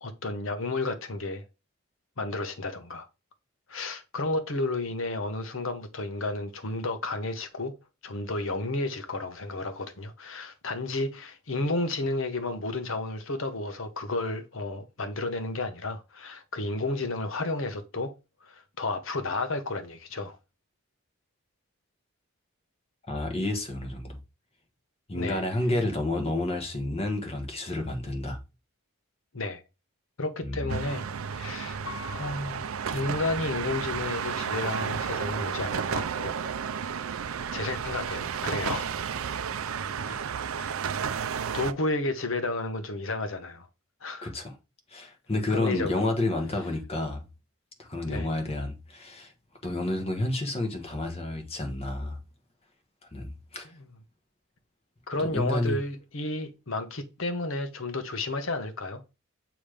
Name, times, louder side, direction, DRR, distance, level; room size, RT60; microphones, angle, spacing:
voice 1, 0.0-1.4 2.2-3.1 3.7-7.7 8.0-18.1 18.4-20.4 25.1-25.5 29.3-29.6 30.2-31.8 32.1-36.4 37.5-39.0 40.0-40.2 40.6-40.7 41.5-43.7 44.0-44.3 45.5-46.1 48.1-48.3 53.8-53.9 55.1-59.0, left 2 dB, 65° left, 1.0 m, -32 dB
voice 2, 23.1-24.2 25.1-28.4 30.4-30.8 40.1-40.2 44.2-44.6 44.9-47.2 47.8-49.3 49.6-52.2 53.1-53.7 55.2-55.8, left 2 dB, 30° left, 1.3 m, -30 dB
sound 1, 30.7-41.7, right 7 dB, 70° right, 0.5 m, -32 dB
Piano, 31.8-33.8 34.4-34.5, left 7 dB, 80° left, 1.2 m, -46 dB
7.1 x 3.1 x 4.9 m
head